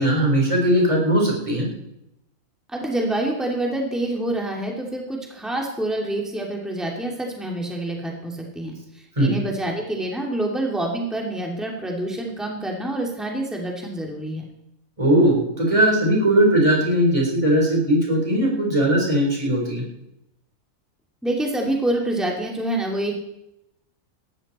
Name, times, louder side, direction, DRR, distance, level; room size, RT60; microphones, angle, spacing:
voice 1, 0.0-1.7 9.2-9.3 15.0-19.8, right 1 dB, 25° right, -1 dB, 4.6 m, -19 dB
voice 2, 2.7-14.4 21.2-23.1, right 1 dB, ahead, -1 dB, 2.6 m, -27 dB
17.0 x 14.0 x 4.3 m, 0.84 s
omnidirectional pair, 1.4 m